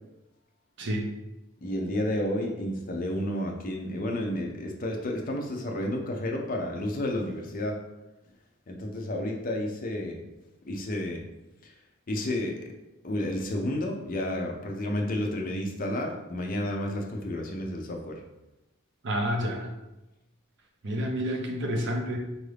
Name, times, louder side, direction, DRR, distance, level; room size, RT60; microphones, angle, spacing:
voice 1, 0.8-1.1 19.0-19.7 20.8-22.2, equal, 55° right, 2 dB, 0.6 m, -29 dB
voice 2, 1.6-7.8 8.7-10.3 10.7-11.2 12.1-12.7 13.0-18.2, left 1 dB, 40° left, 1 dB, 0.5 m, -31 dB
4.6 x 2.5 x 3.3 m, 0.97 s
head